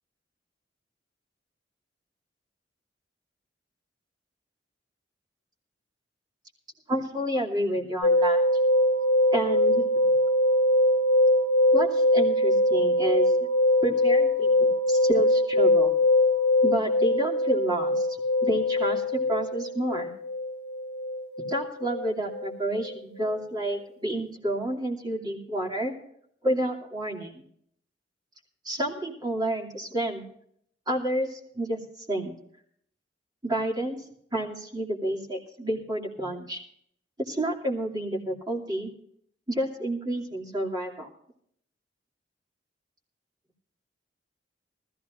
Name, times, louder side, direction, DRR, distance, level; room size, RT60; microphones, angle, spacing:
voice 1, 6.9-8.4 9.3-9.9 11.7-13.3 13.8-16.0 16.6-18.1 18.4-20.1 21.5-25.9 26.4-27.4 28.6-30.3 30.9-31.8 32.1-32.3 33.4-34.0 34.3-36.6 37.2-38.9 39.5-41.1, right 1 dB, 25° right, -1 dB, 2.7 m, -29 dB
sound 1, 8.0-23.0 23.2-23.4, left 1 dB, 60° left, 1.3 m, -23 dB
20.0 x 14.5 x 2.6 m, 0.67 s
head